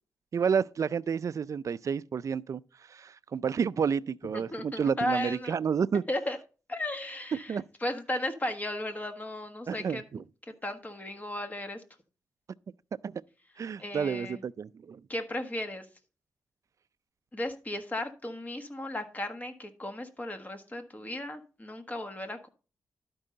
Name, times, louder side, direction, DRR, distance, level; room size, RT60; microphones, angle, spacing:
voice 1, 0.3-2.6 2.9-6.0 7.3-7.6 9.7-10.2 13.0-13.2 13.6-15.0, right 6 dB, 55° right, 0.4 m, -30 dB
voice 2, 4.3-5.5 6.1-6.4 6.7-10.0 10.6-11.8 13.8-14.4 15.1-15.8 17.3-22.5, left 1 dB, 25° left, 1.4 m, -35 dB
12.0 x 5.4 x 3.8 m
cardioid pair, 75°, 7 cm